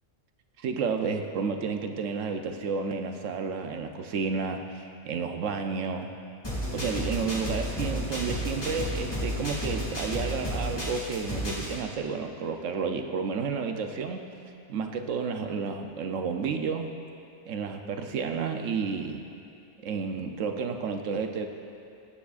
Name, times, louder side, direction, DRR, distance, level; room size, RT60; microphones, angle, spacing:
voice 1, 0.6-4.6 5.1-6.1 6.7-14.2 14.7-17.0 17.5-19.2 19.8-21.5, right 5 dB, 90° right, 5 dB, 1.0 m, -31 dB
sound 1, 6.4-11.7, equal, 20° left, 2.0 m, -32 dB
18.0 x 7.1 x 2.4 m, 2.6 s
omnidirectional pair, 1.3 m